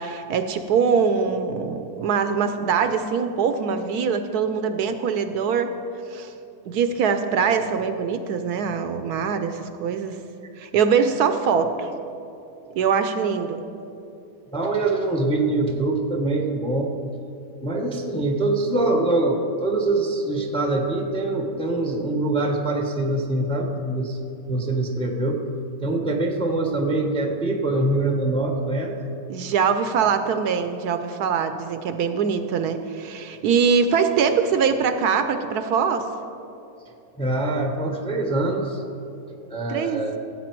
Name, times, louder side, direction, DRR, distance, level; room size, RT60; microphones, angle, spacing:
voice 1, 0.0-5.7 6.1-6.3 6.7-10.2 10.6-11.9 12.8-13.6 29.3-36.1 39.7-40.1, right 6 dB, 70° right, 9 dB, 1.1 m, -23 dB
voice 2, 14.5-16.9 17.6-24.2 24.5-25.4 25.8-29.0 37.2-38.8 39.5-40.1, right 2 dB, 5° left, 3 dB, 0.6 m, -24 dB
16.0 x 8.0 x 4.6 m, 2.8 s
omnidirectional pair, 1.8 m